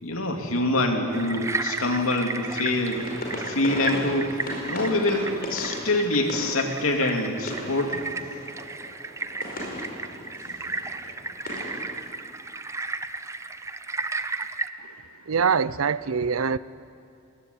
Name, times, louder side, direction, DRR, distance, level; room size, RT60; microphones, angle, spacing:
voice 1, 0.0-3.1 3.3-4.3 4.7-8.0, left 2 dB, 85° left, 3 dB, 2.7 m, -25 dB
sound 1, 1.1-14.7, right 3 dB, 15° right, 0.7 m, -34 dB
sound 2, 2.9-12.0, left 1 dB, 45° left, 5.2 m, -37 dB
voice 2, 15.3-16.6, right 6 dB, 90° right, 18 dB, 0.6 m, -23 dB
20.5 x 18.0 x 9.8 m, 2.5 s
head